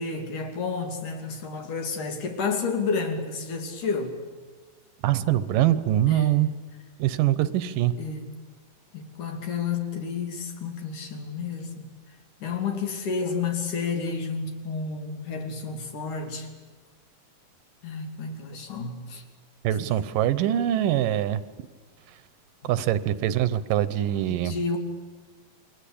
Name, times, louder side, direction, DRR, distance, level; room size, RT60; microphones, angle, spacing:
voice 1, 0.0-4.2 6.1-6.5 7.4-7.5 8.0-8.3 8.9-11.9 12.4-16.5 17.8-19.2 19.9-20.0 24.3-24.8, left 5 dB, 70° left, 4 dB, 4.2 m, -31 dB
voice 2, 5.0-6.5 7.0-7.9 19.6-21.4 22.6-24.5, right 12 dB, 85° right, 15 dB, 2.6 m, -23 dB
28.5 x 22.5 x 8.6 m, 1.4 s
omnidirectional pair, 3.8 m